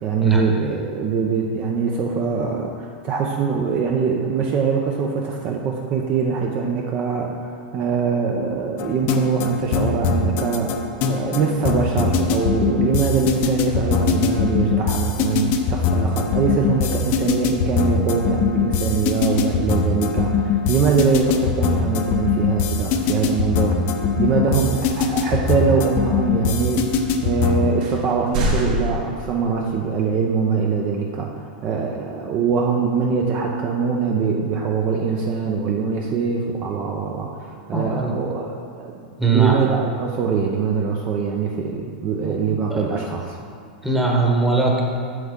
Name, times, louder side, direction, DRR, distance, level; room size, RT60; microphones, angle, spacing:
voice 1, 0.0-10.7 11.1-23.8 24.2-38.9 39.3-43.4, right 5 dB, 35° right, 1 dB, 0.6 m, -23 dB
sound 1, 8.8-27.7, left 5 dB, 45° left, 0.7 m, -22 dB
sound 2, 23.9-24.1 25.2-25.6 26.3-26.4 27.2-27.3 27.8-29.7, equal, 65° right, 1.6 m, -26 dB
voice 2, 37.7-38.2 39.2-39.6 42.2-42.4 42.7-43.1 43.8-44.8, right 4 dB, 5° right, -2 dB, 1.1 m, -20 dB
7.8 x 6.9 x 3.7 m, 2.2 s
supercardioid pair, 140°, 5 cm